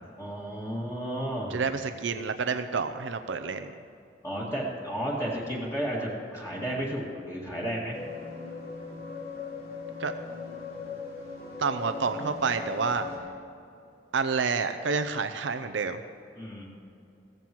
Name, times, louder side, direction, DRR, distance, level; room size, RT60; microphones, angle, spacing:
voice 1, 0.2-1.6 4.2-8.0 16.3-16.7, equal, 15° left, -5 dB, 2.2 m, -32 dB
voice 2, 1.5-3.7 10.0-10.1 11.6-13.1 14.1-16.0, right 5 dB, 80° right, 8 dB, 0.6 m, -29 dB
sound 1, 7.9-13.2, left 5 dB, 55° left, 2.6 m, -39 dB
16.0 x 14.5 x 3.1 m, 2.6 s
head